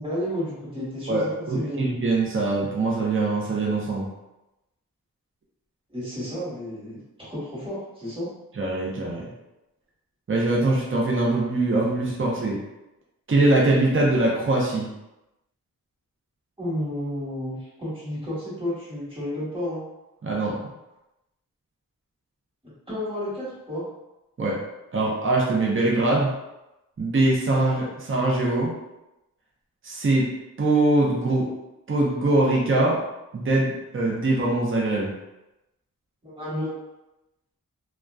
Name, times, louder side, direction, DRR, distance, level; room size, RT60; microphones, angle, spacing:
voice 1, 0.0-1.8 5.9-8.3 16.6-19.8 22.9-23.8 36.2-36.7, left 1 dB, 15° right, -9 dB, 1.3 m, -31 dB
voice 2, 1.1-4.1 8.6-9.3 10.3-12.6 13.3-14.9 20.2-20.6 24.4-24.6 24.9-26.3 27.0-28.7 29.8-30.3 30.6-31.5 31.9-33.0 33.3-35.1, right 2 dB, 35° right, -3 dB, 0.6 m, -22 dB
2.5 x 2.2 x 2.2 m, 0.95 s
wide cardioid pair, 75°, 34 cm